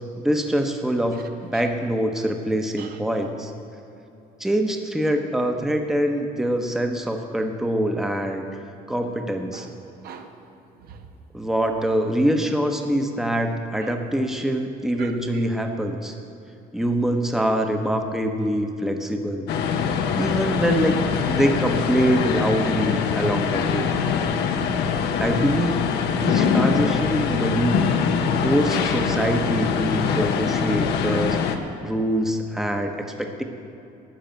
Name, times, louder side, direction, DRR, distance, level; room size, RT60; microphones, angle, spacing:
voice 1, 0.2-1.2 1.4-3.5 4.4-8.5 8.9-9.7 11.3-16.1 16.7-19.5 20.2-21.0 21.3-23.9 25.2-25.9 26.2-27.8 28.4-31.4 31.8-32.9 33.2-33.4, right 1 dB, 5° right, 4 dB, 1.0 m, -24 dB
voice 2, 1.1-1.7 2.8-3.0 9.5-9.8 10.0-11.1 13.8-14.0 15.0-15.4, right 6 dB, 65° right, 5 dB, 1.1 m, -43 dB
sound 1, 19.5-31.6, left 6 dB, 80° left, 1.0 m, -23 dB
12.5 x 6.3 x 9.1 m, 2.8 s
cardioid pair, 110°, 17 cm